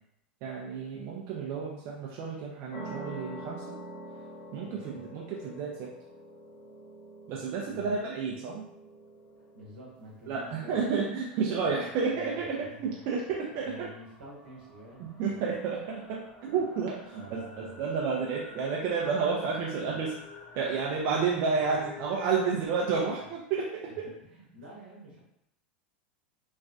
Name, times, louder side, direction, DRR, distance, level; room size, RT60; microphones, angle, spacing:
voice 1, 0.4-3.7 4.5-5.9 7.3-8.6 10.3-13.9 15.0-20.2 20.5-24.1, right 5 dB, 50° right, -3 dB, 0.5 m, -31 dB
sound 1, 2.7-9.9, right 1 dB, 55° left, 1.0 m, -45 dB
voice 2, 4.6-5.1 7.6-8.1 9.4-10.8 11.6-13.0 13.4-15.3 16.7-16.9 17.1-17.8 23.9-25.2, equal, 80° right, -4 dB, 1.0 m, -49 dB
sound 2, 10.0-22.7, left 3 dB, 30° left, 0.8 m, -51 dB
3.2 x 2.2 x 2.5 m, 0.78 s
hypercardioid pair, 85°, 5 cm